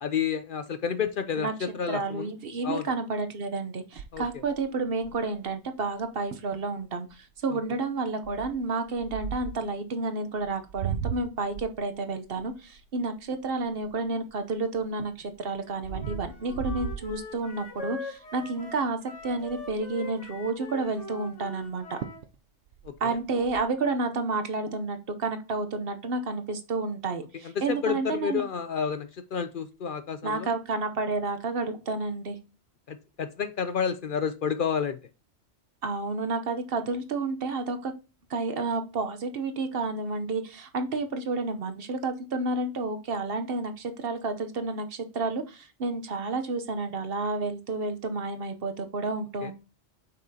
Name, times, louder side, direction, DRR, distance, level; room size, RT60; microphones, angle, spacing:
voice 1, 0.0-2.3 2.6-2.9 4.1-4.2 22.8-23.2 27.4-30.5 32.9-35.0 49.4-49.5, left 7 dB, 60° left, 10 dB, 0.6 m, -30 dB
voice 2, 1.9-22.0 23.0-28.4 30.2-32.4 35.8-37.9 38.3-49.5, right 3 dB, 60° right, 8 dB, 1.0 m, -30 dB
sound 1, 4.0-5.4 6.0-6.1 6.3-6.6 7.1-7.4 8.2-9.7 10.4-14.3 14.8-17.8 18.3-18.5 18.8-18.9 19.2-19.9 21.6-21.7 22.0-22.4 22.7-23.6, right 8 dB, 85° right, 0.9 m, -37 dB
Wind instrument woodwind instrument, 15.9-22.2, left 4 dB, 85° left, 1.7 m, -42 dB
7.6 x 5.6 x 2.7 m, 0.32 s
omnidirectional pair, 1.2 m